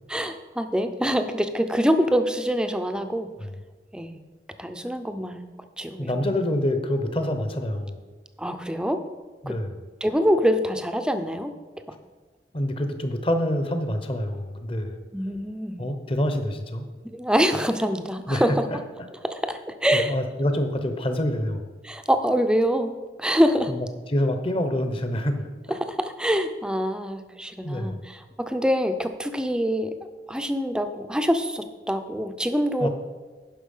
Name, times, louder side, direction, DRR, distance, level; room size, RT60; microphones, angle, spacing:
voice 1, 0.1-3.3 3.9-4.2 4.6-5.5 5.8-6.3 8.4-9.0 9.5-9.6 10.0-11.5 15.1-15.9 17.1-18.8 19.2-20.1 21.8-23.7 25.7-29.9 30.3-32.9, equal, 5° right, 8 dB, 0.5 m, -25 dB
voice 2, 6.0-8.1 9.4-9.7 12.5-15.0 15.8-16.8 18.3-18.8 19.9-21.7 23.7-25.5 27.6-28.0 32.8-32.9, left 1 dB, 30° left, 7 dB, 0.8 m, -26 dB
10.5 x 5.6 x 5.5 m, 1.4 s
head